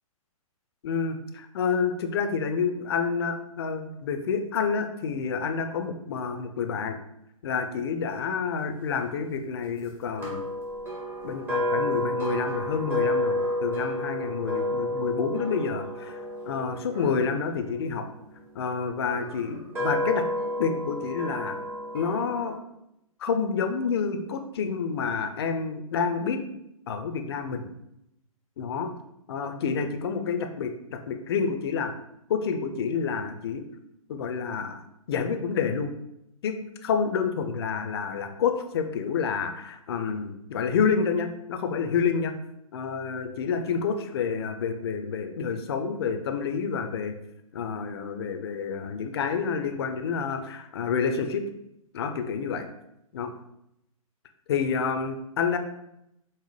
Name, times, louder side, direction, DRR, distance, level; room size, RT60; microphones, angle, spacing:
voice 1, 0.8-7.0 7.4-10.4 11.2-18.1 18.6-20.3 20.6-21.6 21.9-22.6 23.2-26.4 26.9-27.7 28.6-28.9 29.3-31.9 32.3-33.6 34.1-34.8 35.1-35.9 36.4-42.3 42.7-47.2 47.5-51.4 51.9-52.7 53.1-53.3 54.5-55.6, left 6 dB, 45° left, 6 dB, 0.4 m, -28 dB
sound 1, 10.2-18.3 19.1-22.6, left 1 dB, 10° right, 0.6 m, -31 dB
4.0 x 2.0 x 3.1 m, 0.81 s
figure-of-eight pair, 125°, 19 cm